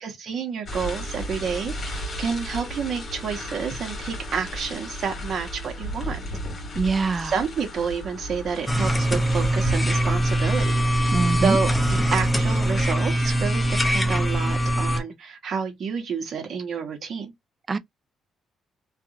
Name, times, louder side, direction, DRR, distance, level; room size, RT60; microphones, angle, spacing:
voice 1, 0.0-6.2 7.2-10.8 11.4-17.3, right 6 dB, 55° right, 1.0 m, -29 dB
sound 1, 0.6-13.0, equal, 45° left, 1.6 m, -35 dB
voice 2, 6.8-7.3 11.1-11.6 17.7-17.8, right 4 dB, 35° right, 0.4 m, -23 dB
sound 2, 8.7-15.0, right 1 dB, 15° left, 0.6 m, -22 dB
2.8 x 2.5 x 2.5 m
cardioid pair, 90°, 0 cm